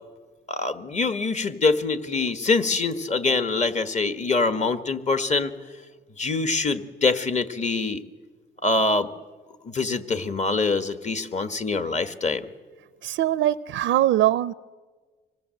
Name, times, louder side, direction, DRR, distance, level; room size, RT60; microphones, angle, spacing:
voice 1, 0.5-5.5 6.2-8.0 8.6-9.1 9.6-12.5, left 3 dB, 35° left, 10 dB, 1.6 m, -24 dB
voice 2, 13.0-14.5, right 13 dB, 80° right, 15 dB, 0.6 m, -22 dB
25.5 x 19.5 x 7.8 m, 1.4 s
cardioid pair, 90°, 20 cm